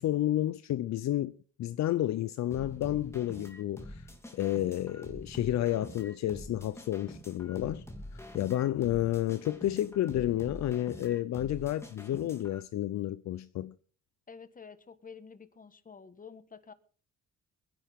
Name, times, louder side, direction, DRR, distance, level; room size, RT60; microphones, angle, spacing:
voice 1, 0.0-7.8 8.1-13.7, left 13 dB, 65° left, 0.6 m, -31 dB
sound 1, 2.5-12.6, left 1 dB, 10° left, 2.7 m, -46 dB
voice 2, 14.3-16.7, left 5 dB, 25° left, 1.4 m, -49 dB
23.0 x 10.5 x 3.6 m
cardioid pair, 90°, 30 cm